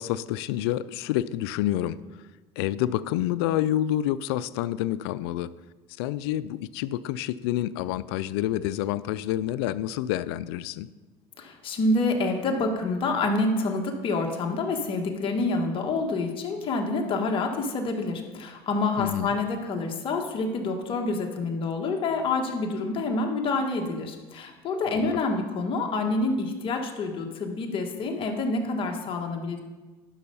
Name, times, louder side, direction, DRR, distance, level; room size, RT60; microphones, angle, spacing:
voice 1, 0.0-2.0 2.6-5.5 6.0-10.9 19.0-19.3 24.9-25.2, left 13 dB, 90° left, 17 dB, 0.4 m, -28 dB
voice 2, 11.4-29.6, left 3 dB, 45° left, 2 dB, 1.6 m, -27 dB
11.0 x 5.5 x 5.5 m, 1.2 s
supercardioid pair, 105°, 13 cm